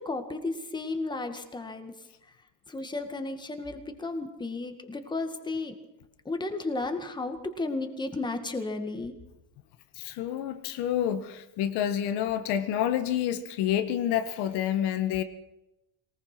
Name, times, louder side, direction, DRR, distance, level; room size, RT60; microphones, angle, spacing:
voice 1, 0.0-2.0 2.7-5.8 6.3-9.1, left 3 dB, 10° left, 6 dB, 2.0 m, -33 dB
voice 2, 10.0-15.2, left 10 dB, 75° left, 10 dB, 1.7 m, -28 dB
22.0 x 19.5 x 6.1 m, 0.95 s
cardioid pair, 155°, 41 cm